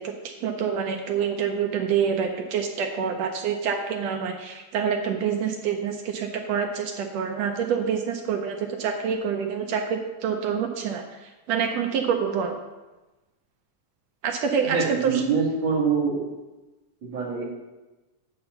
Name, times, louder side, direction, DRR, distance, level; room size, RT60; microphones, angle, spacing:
voice 1, 0.0-12.6 14.2-15.2, right 7 dB, 75° right, 4 dB, 1.6 m, -27 dB
voice 2, 14.6-16.2 17.0-17.4, right 5 dB, 45° right, -6 dB, 2.0 m, -24 dB
8.9 x 4.1 x 6.7 m, 1.1 s
omnidirectional pair, 3.4 m